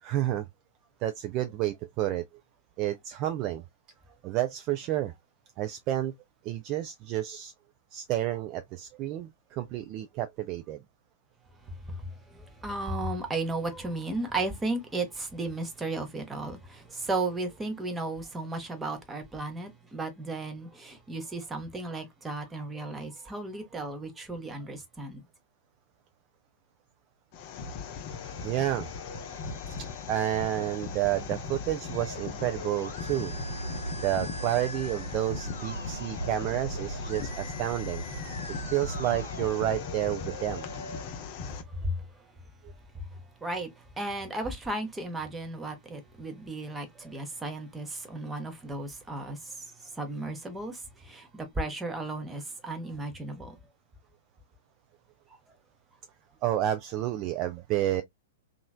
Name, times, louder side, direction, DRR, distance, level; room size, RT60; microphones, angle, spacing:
voice 1, 0.0-0.5 1.0-2.2 2.8-3.6 4.2-5.1 5.6-6.1 6.4-7.5 7.9-10.8 28.4-28.9 30.1-33.3 34.0-38.0 38.7-40.6 56.4-58.0, right 13 dB, 35° right, 0.3 m, -30 dB
voice 2, 11.9-25.2 41.5-42.0 43.4-53.5, right 2 dB, 10° right, 0.8 m, -35 dB
sound 1, 27.3-41.6, left 5 dB, 40° left, 0.6 m, -39 dB
Musical instrument, 28.1-41.1, left 1 dB, 85° left, 0.7 m, -44 dB
sound 2, 33.3-39.3, right 3 dB, 70° right, 0.9 m, -39 dB
3.0 x 2.4 x 2.3 m
figure-of-eight pair, 105°, 0 cm